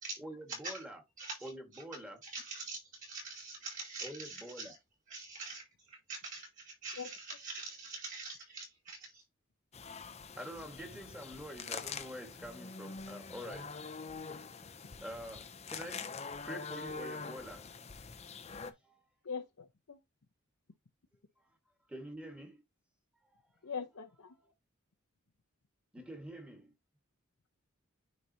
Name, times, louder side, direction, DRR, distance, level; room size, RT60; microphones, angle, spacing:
voice 1, 0.2-1.0 1.4-2.2 4.0-4.7 10.4-13.8 14.6-14.7 15.0-16.1 16.4-17.8 18.8-19.0 21.9-22.6 23.2-23.7 24.4-24.5 25.9-26.7, equal, 5° right, 1.7 m, -46 dB
voice 2, 1.2-1.8 2.2-4.8 5.1-9.2, right 3 dB, 40° right, 4.2 m, -45 dB
sound 1, 9.7-18.7, left 5 dB, 30° left, 0.6 m, -45 dB
voice 3, 19.2-20.0 23.6-24.3, left 6 dB, 80° left, 0.8 m, -41 dB
9.6 x 4.1 x 2.8 m
head